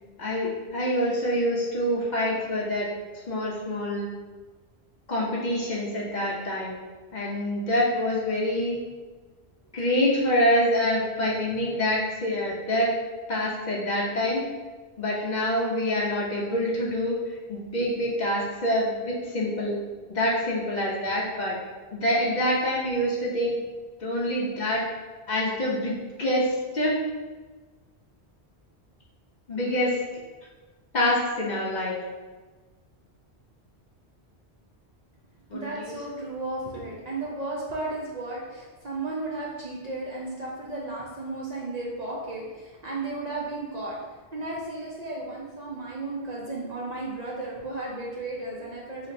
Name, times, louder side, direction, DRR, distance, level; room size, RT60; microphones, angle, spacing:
voice 1, 0.2-2.9 3.3-4.1 5.1-6.8 7.1-8.8 9.7-12.9 13.3-14.4 15.0-19.8 20.1-21.6 21.9-23.6 24.0-24.9 25.3-27.0 29.5-30.0 30.9-32.0 35.5-36.0, left 1 dB, 50° left, -4 dB, 0.7 m, -26 dB
voice 2, 35.5-44.0 44.3-49.1, right 2 dB, 50° right, -4 dB, 0.5 m, -34 dB
4.2 x 2.9 x 2.5 m, 1.3 s
omnidirectional pair, 1.1 m